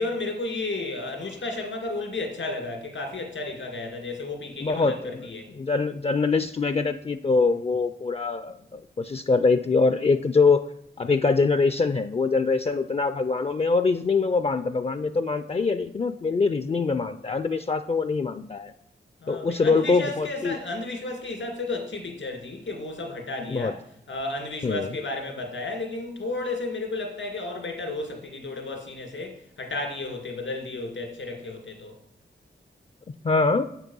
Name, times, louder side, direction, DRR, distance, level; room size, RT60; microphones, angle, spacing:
voice 1, 0.0-5.4 19.2-23.8 24.1-31.9, left 2 dB, 85° left, 2 dB, 2.2 m, -33 dB
voice 2, 4.6-10.6 11.0-18.7 19.3-20.6 23.4-23.7 24.6-25.0 33.2-33.6, left 4 dB, 30° left, 10 dB, 0.4 m, -24 dB
7.0 x 6.0 x 5.5 m, 0.77 s
wide cardioid pair, 80°, 19 cm